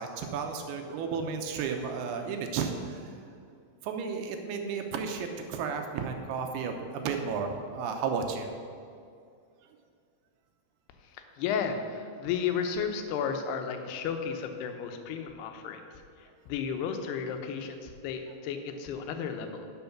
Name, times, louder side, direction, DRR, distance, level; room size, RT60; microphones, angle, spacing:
voice 1, 0.0-3.1 3.8-8.5, right 5 dB, 80° right, 4 dB, 2.6 m, -33 dB
voice 2, 11.4-15.8 16.2-19.7, left 7 dB, 80° left, 6 dB, 2.8 m, -33 dB
11.0 x 6.3 x 5.9 m, 2.4 s
omnidirectional pair, 4.7 m